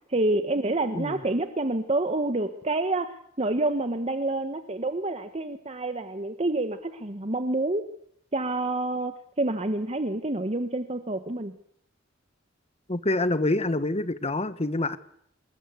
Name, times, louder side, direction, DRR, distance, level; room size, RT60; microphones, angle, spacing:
voice 1, 0.1-3.1 3.4-7.8 8.3-11.6, right 2 dB, 35° right, 9 dB, 1.3 m, -28 dB
voice 2, 12.9-15.0, left 2 dB, 30° left, 13 dB, 1.4 m, -26 dB
27.5 x 21.0 x 8.2 m, 0.70 s
head